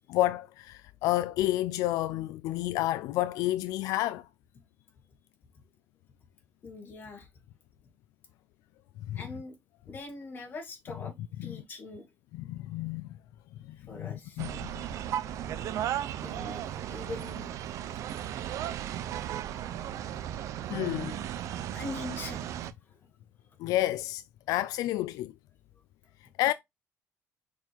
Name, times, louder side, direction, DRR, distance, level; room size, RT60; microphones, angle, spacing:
voice 1, 0.1-4.3 9.1-9.2 11.4-11.6 12.3-13.1 13.7-14.8 20.7-21.2 23.6-25.3 26.4-26.5, left 15 dB, 80° left, 0.3 m, -30 dB
voice 2, 6.6-7.3 9.1-9.5 9.9-11.1 11.4-12.1 13.8-14.4 16.2-17.6 18.7-18.8 19.6-19.8 20.1-20.2 20.6-20.7 21.7-23.0, left 3 dB, 35° left, 2.2 m, -43 dB
sound 1, 14.4-22.7, right 11 dB, 60° right, 0.6 m, -35 dB
5.8 x 4.7 x 3.5 m
cardioid pair, 150°, 6 cm